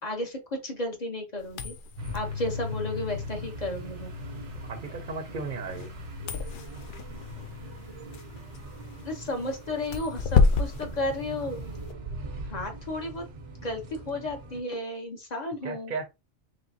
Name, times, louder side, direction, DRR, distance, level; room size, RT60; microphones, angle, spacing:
voice 1, 0.0-1.7 2.1-4.1 9.0-11.6 12.5-13.3 13.6-15.9, left 1 dB, 40° left, 1.0 m, -33 dB
sound 1, 1.4-11.9, left 5 dB, 60° left, 0.6 m, -31 dB
sound 2, 2.0-14.6, left 1 dB, 85° right, 1.2 m, -40 dB
voice 2, 4.6-6.0 15.6-16.1, right 4 dB, 50° right, 0.7 m, -35 dB
4.0 x 3.2 x 2.7 m
omnidirectional pair, 1.2 m